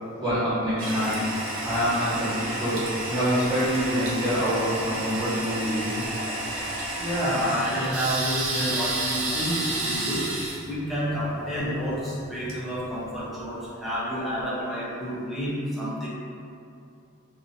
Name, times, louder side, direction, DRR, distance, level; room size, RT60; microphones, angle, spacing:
voice 1, 0.2-1.2 1.6-6.0, equal, 25° right, -14 dB, 1.3 m, -26 dB
Toilet flush, 0.8-13.4, right 2 dB, 75° right, 0.6 m, -31 dB
voice 2, 6.1-6.4 7.0-10.3 10.6-16.1, equal, ahead, -10 dB, 0.7 m, -29 dB
2.7 x 2.6 x 2.6 m, 2.5 s
head